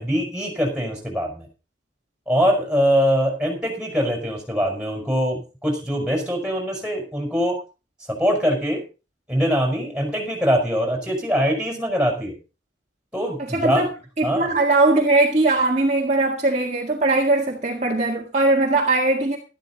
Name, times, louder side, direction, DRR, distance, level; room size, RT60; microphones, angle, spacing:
voice 1, 0.0-1.5 2.3-7.6 8.1-8.8 9.3-12.3 13.1-13.8 14.2-14.5, equal, 5° right, 5.2 m, -23 dB
voice 2, 13.4-13.9 14.2-19.4, right 2 dB, 35° right, 1.8 m, -20 dB
13.0 x 12.0 x 4.1 m
head